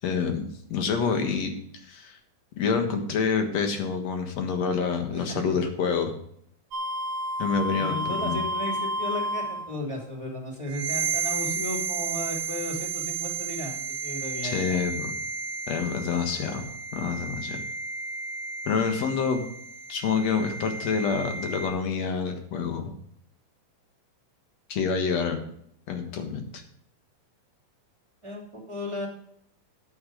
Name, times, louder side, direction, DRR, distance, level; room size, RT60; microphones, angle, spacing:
voice 1, 0.0-1.5 1.9-2.2 2.6-6.1 7.4-8.4 14.4-15.1 15.7-17.6 18.7-19.5 19.9-22.9 24.7-25.4 25.9-26.4, left 5 dB, 60° left, 5 dB, 2.5 m, -27 dB
sound 1, 6.7-9.8 10.7-21.7, right 3 dB, 80° right, 1.0 m, -32 dB
voice 2, 7.7-14.8 28.2-29.1, left 1 dB, 10° right, -1 dB, 2.8 m, -35 dB
9.8 x 8.9 x 5.0 m, 0.69 s
omnidirectional pair, 3.6 m